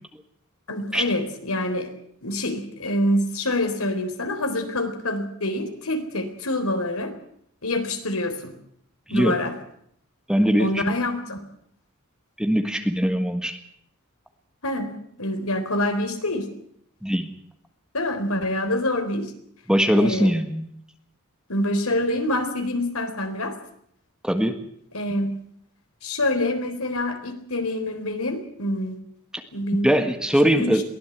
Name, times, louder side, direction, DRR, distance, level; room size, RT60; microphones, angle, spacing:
voice 1, 0.7-1.9 2.2-7.1 7.6-8.5 9.1-9.5 10.6-11.4 14.6-16.5 17.9-19.3 19.9-20.3 21.5-23.5 24.9-25.3 26.0-29.0 29.5-30.0 30.6-30.8, left 1 dB, 75° left, 7 dB, 3.9 m, -26 dB
voice 2, 10.3-10.8 12.4-13.6 17.0-17.3 19.7-20.7 24.2-24.6 29.8-30.8, equal, 5° right, 6 dB, 1.6 m, -21 dB
23.0 x 16.5 x 8.1 m, 0.71 s
head